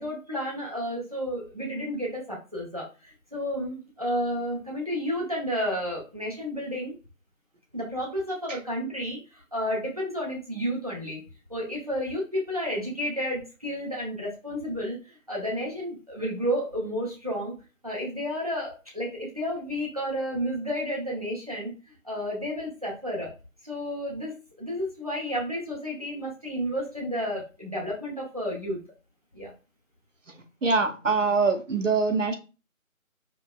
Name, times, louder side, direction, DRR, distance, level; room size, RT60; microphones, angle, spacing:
voice 1, 0.0-6.9 7.7-11.2 11.5-17.6 17.8-21.7 22.0-23.3 23.6-28.8 29.3-29.5, equal, 25° right, -3 dB, 0.7 m, -31 dB
voice 2, 30.6-32.3, right 4 dB, 65° right, 7 dB, 0.7 m, -23 dB
5.0 x 2.0 x 2.3 m, 0.31 s
figure-of-eight pair, 165°, 42 cm